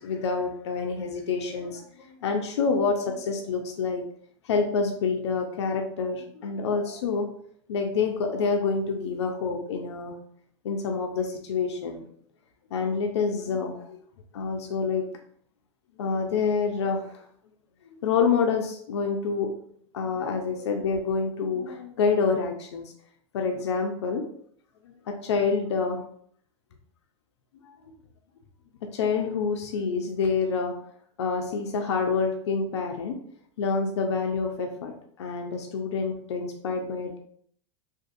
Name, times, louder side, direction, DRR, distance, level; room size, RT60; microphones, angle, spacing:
voice 1, 0.0-4.0 4.5-7.3 7.7-10.1 10.6-12.1 12.7-14.0 14.3-15.0 16.0-17.2 17.9-19.5 19.9-22.8 23.3-24.2 24.8-26.0 27.6-27.9 28.8-30.8 31.2-33.2 33.6-37.2, left 5 dB, 90° left, 3 dB, 0.4 m, -27 dB
2.5 x 2.4 x 2.5 m, 0.64 s
hypercardioid pair, 110°, 14 cm